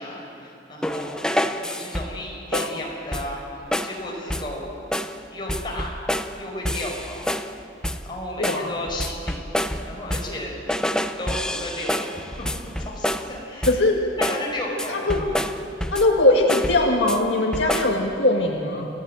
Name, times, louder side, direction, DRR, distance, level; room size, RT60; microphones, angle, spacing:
voice 1, 0.0-3.4 3.8-4.7 5.3-6.0 6.4-7.3 8.0-9.4 9.8-10.5 11.2-13.8 14.2-15.4, left 1 dB, 25° left, -2 dB, 5.5 m, -33 dB
sound 1, 0.8-2.2 2.5-2.8 3.1-3.4 3.7-4.0 4.3-4.6 4.9-5.2 5.5-6.4 6.7-7.5 7.8-8.1 8.4-10.4 10.7-13.3 13.6-13.9 14.2-14.5 14.8-16.2 16.5-17.2 17.5-18.0, left 1 dB, 5° left, 0.7 m, -28 dB
voice 2, 8.4-8.7 13.7-14.1 14.9-15.2 15.9-18.9, left 2 dB, 70° left, 0 dB, 1.9 m, -20 dB
29.0 x 16.0 x 9.1 m, 2.8 s
head